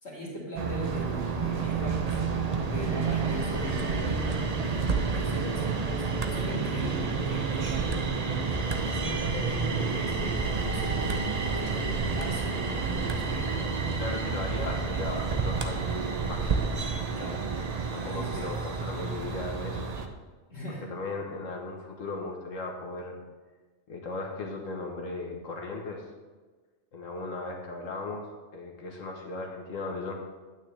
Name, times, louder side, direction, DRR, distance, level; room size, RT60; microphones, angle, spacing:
voice 1, 0.0-2.3 2.6-4.2 5.1-8.2 8.9-13.5 17.1-17.4 18.1-18.6 20.5-20.9, equal, 55° left, -4 dB, 2.6 m, -39 dB
sound 1, 0.6-20.1, right 4 dB, 40° right, 0.6 m, -29 dB
voice 2, 13.9-15.9 16.3-16.7 17.9-19.9 20.9-23.1 23.9-26.0 26.9-28.3 28.5-30.1, left 3 dB, 80° left, 0 dB, 1.5 m, -37 dB
9.2 x 9.0 x 3.3 m, 1.3 s
omnidirectional pair, 1.3 m